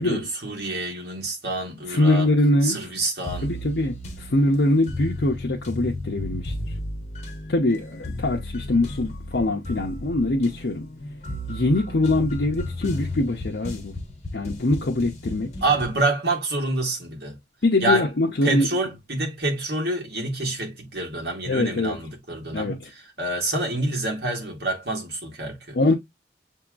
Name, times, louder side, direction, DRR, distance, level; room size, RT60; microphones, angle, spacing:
voice 1, 0.0-2.3 2.6-3.5 15.6-17.4 17.8-18.1 18.4-22.8 23.2-25.8, right 2 dB, 65° right, 1.6 m, -27 dB
voice 2, 1.9-2.8 3.4-6.5 7.5-10.9 11.5-14.0 14.3-15.5 17.6-18.7 21.5-22.0 22.5-22.9 25.7-25.9, left 2 dB, 75° left, 0.7 m, -23 dB
sound 1, 3.2-16.0, left 1 dB, 40° left, 1.1 m, -34 dB
6.8 x 2.8 x 2.3 m
head